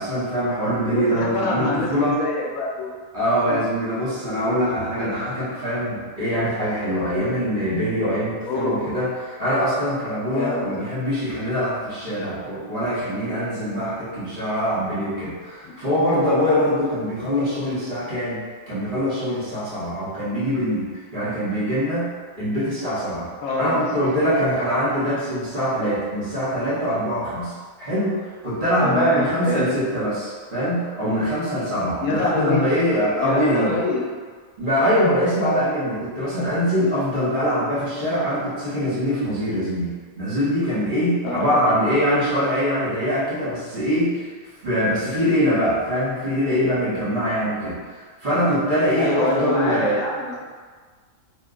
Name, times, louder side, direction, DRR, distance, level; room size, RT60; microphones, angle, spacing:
voice 1, 0.0-2.2 3.1-18.4 18.7-22.1 22.4-23.3 23.6-33.7 34.6-44.2 44.6-50.0, equal, 40° right, -10 dB, 0.9 m, -23 dB
voice 2, 1.1-3.0 3.5-3.6 8.4-8.8 10.3-10.8 15.6-15.7 23.4-23.8 28.8-29.8 32.0-32.7 33.2-34.1 41.2-41.7 49.0-50.4, left 2 dB, 70° left, -3 dB, 0.9 m, -25 dB
2.8 x 2.1 x 3.5 m, 1.5 s
omnidirectional pair, 1.6 m